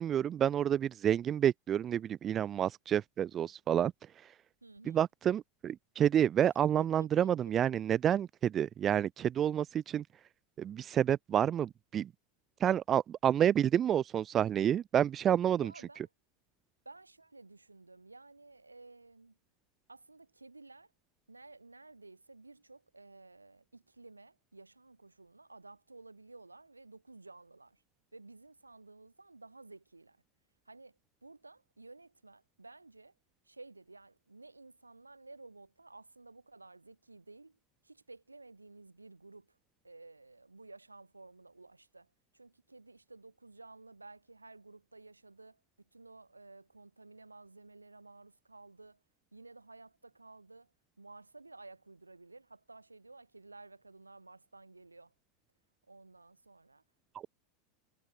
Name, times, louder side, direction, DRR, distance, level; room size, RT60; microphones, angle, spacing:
voice 1, 0.0-3.9 4.2-4.3 4.8-10.0 10.6-12.1 12.6-15.7, right 10 dB, 30° right, 0.6 m, -29 dB
voice 2, 4.6-5.0 6.8-7.1 15.6-16.1 16.8-19.3 19.9-20.9 21.3-27.8 28.1-30.2 30.6-30.9 31.2-33.1 33.5-37.5 37.8-39.5 39.8-42.1 42.3-45.6 45.9-49.0 49.3-50.7 51.0-55.1 55.9-56.8, right 3 dB, 85° right, 3.4 m, -54 dB
figure-of-eight pair, 80°, 0 cm